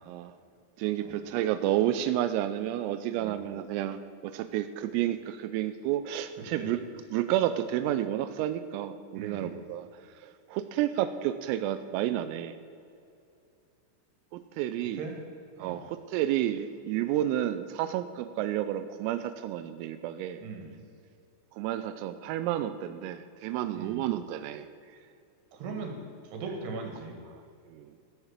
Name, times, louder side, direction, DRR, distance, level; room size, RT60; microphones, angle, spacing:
voice 1, 0.8-6.8 7.1-9.9 10.2-12.6 14.3-15.0 15.6-20.4 21.5-24.7 27.7-27.9, right 12 dB, 90° right, 10 dB, 3.3 m, -30 dB
voice 2, 6.4-6.7 9.2-9.5 15.0-15.2 15.6-15.8 20.4-20.7 23.8-24.0 25.5-27.2, right 4 dB, 60° right, 2 dB, 3.6 m, -39 dB
15.0 x 8.0 x 7.3 m, 2.6 s
omnidirectional pair, 5.9 m